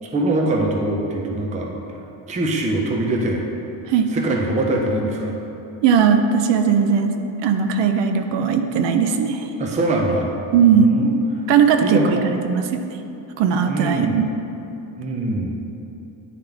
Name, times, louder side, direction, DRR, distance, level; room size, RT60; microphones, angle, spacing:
voice 1, 0.0-1.8 2.3-3.5 3.8-5.3 9.6-10.3 10.6-11.1 11.8-12.3 13.7-14.2 15.0-15.6, right 1 dB, 15° right, 0 dB, 0.4 m, -23 dB
voice 2, 5.8-7.1 7.4-9.5 10.5-10.9 11.5-12.8 13.4-14.3, right 7 dB, 65° right, 6 dB, 0.6 m, -18 dB
10.0 x 3.6 x 3.4 m, 2.9 s
cardioid pair, 165°, 47 cm